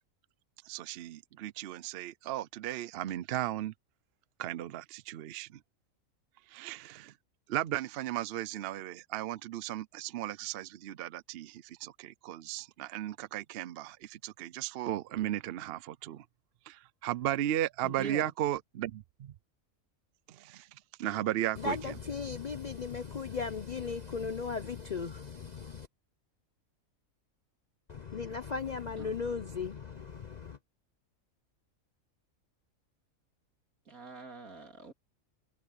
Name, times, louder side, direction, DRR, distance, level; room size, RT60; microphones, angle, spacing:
voice 1, 0.7-3.7 4.4-5.6 6.5-7.1 7.5-16.2 16.7-19.3 20.3-20.7 21.0-21.8, right 13 dB, 60° right, 0.6 m, -35 dB
voice 2, 17.8-18.3 29.0-29.1 33.9-34.9, right 3 dB, 90° right, 3.1 m, -44 dB
voice 3, 21.6-25.9 27.9-30.6, left 5 dB, 50° left, 0.5 m, -37 dB
omnidirectional pair, 1.4 m